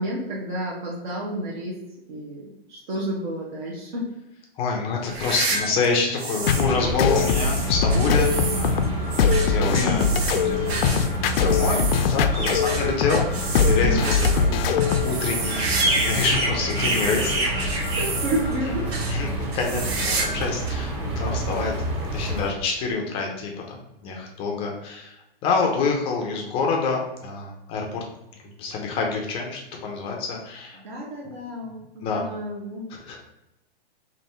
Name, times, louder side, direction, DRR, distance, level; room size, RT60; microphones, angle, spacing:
voice 1, 0.0-1.8 2.1-4.1 9.6-10.4 13.7-14.0 18.0-18.9 30.8-32.8, equal, 50° right, -4 dB, 1.1 m, -30 dB
voice 2, 4.6-8.9 9.2-10.9 11.3-17.9 18.7-18.8 19.1-21.7 22.1-28.0 28.4-30.8 31.2-31.3 32.0-32.2 32.9-33.4, left 4 dB, 20° left, 0 dB, 0.5 m, -27 dB
sound 1, 5.0-6.7 7.0-16.4 16.7-18.6 18.9-19.1 19.5-20.4 20.7-20.8 21.6-21.7 22.9-23.0, right 4 dB, 90° right, 0.9 m, -31 dB
sound 2, 6.4-22.5, right 1 dB, 30° right, 1.4 m, -28 dB
sound 3, 6.5-15.1, left 6 dB, 70° left, 0.5 m, -22 dB
3.3 x 2.6 x 4.2 m, 0.91 s
hypercardioid pair, 145°, 30 cm